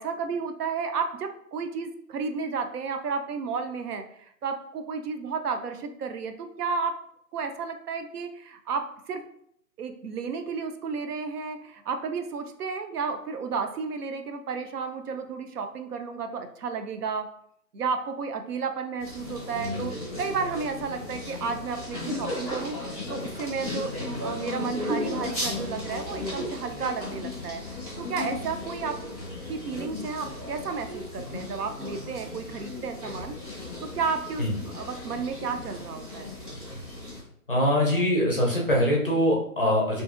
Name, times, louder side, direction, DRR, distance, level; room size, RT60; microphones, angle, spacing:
voice 1, 0.0-7.0 7.3-9.3 9.8-17.3 17.7-27.6 28.0-29.0 29.5-33.4 33.8-36.3, right 5 dB, 70° right, 6 dB, 0.5 m, -32 dB
sound 1, 19.0-37.2, left 2 dB, 25° right, 0.6 m, -35 dB
voice 2, 37.5-40.0, equal, 40° left, -3 dB, 0.4 m, -23 dB
2.8 x 2.7 x 2.4 m, 0.68 s
hypercardioid pair, 160°, 48 cm